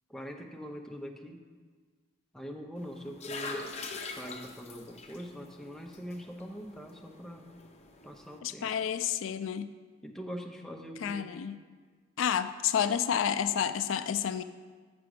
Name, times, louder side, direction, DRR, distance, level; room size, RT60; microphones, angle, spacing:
voice 1, 0.1-1.4 2.3-3.7 4.2-7.5 8.0-8.7 10.0-11.3, equal, 5° left, 1 dB, 0.7 m, -43 dB
sound 1, 2.8-8.4, left 3 dB, 35° left, 0.7 m, -44 dB
voice 2, 8.4-9.7 11.0-11.6 12.2-14.4, left 8 dB, 80° left, 12 dB, 0.4 m, -30 dB
6.7 x 6.0 x 6.5 m, 1.5 s
head